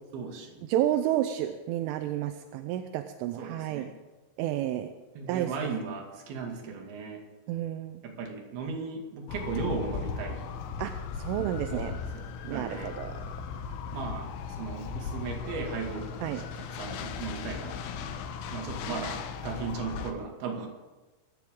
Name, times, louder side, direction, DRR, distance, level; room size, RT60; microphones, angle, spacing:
voice 1, 0.1-0.6 3.4-3.9 5.2-7.2 8.0-10.4 11.7-12.3 12.5-12.9 13.9-18.2 18.5-20.7, right 5 dB, 55° right, 2 dB, 3.8 m, -37 dB
voice 2, 0.7-3.9 4.4-4.9 5.3-5.5 7.5-8.0 10.8-11.9 12.4-13.2 16.2-16.4, right 12 dB, 85° right, 8 dB, 3.2 m, -30 dB
sound 1, 9.3-20.1, left 6 dB, 80° left, 3.3 m, -37 dB
24.5 x 13.5 x 3.8 m, 1.2 s
omnidirectional pair, 5.7 m